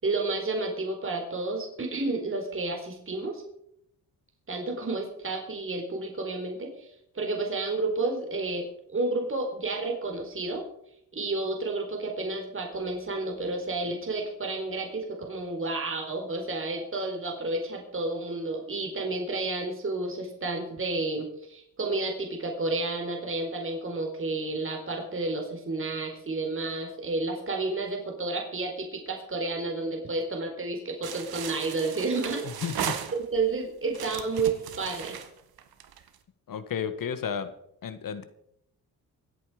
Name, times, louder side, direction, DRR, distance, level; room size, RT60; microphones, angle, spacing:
voice 1, 0.0-3.4 4.5-8.7 8.9-10.6 11.1-32.4 33.1-35.2, right 3 dB, 35° right, 1 dB, 4.2 m, -31 dB
sound 1, 31.0-33.5 33.9-36.2, right 9 dB, 75° right, 1.7 m, -36 dB
voice 2, 32.4-33.0 36.5-37.5 37.8-38.2, left 7 dB, 60° left, 11 dB, 1.6 m, -32 dB
25.0 x 8.6 x 5.0 m, 0.74 s
cardioid pair, 90°, 37 cm